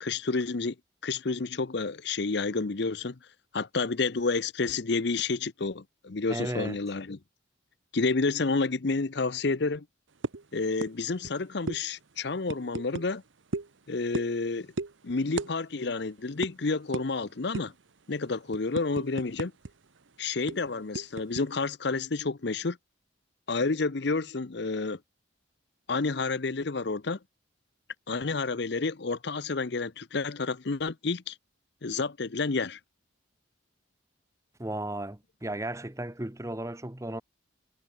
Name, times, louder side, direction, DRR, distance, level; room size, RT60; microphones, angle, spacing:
voice 1, 0.0-0.7 1.0-3.2 3.5-7.2 7.9-9.8 10.5-13.2 13.9-14.7 15.0-17.7 18.1-19.5 20.2-22.8 23.5-25.0 25.9-27.2 28.1-31.3 31.8-32.8, left 3 dB, 55° left, 0.7 m, -30 dB
voice 2, 6.3-6.8 34.6-37.2, right 1 dB, 15° right, 1.0 m, -35 dB
sound 1, 10.2-10.5 10.8-11.0 11.2-11.4 11.7-11.8 12.5-13.1 13.5-13.7 14.1-14.4 14.8-14.9 15.4-15.5 15.8-16.0 16.4-16.5 16.9-17.1 17.5-17.8 18.2-19.7 20.0-20.1 20.5-21.4, right 3 dB, 70° right, 0.9 m, -34 dB
head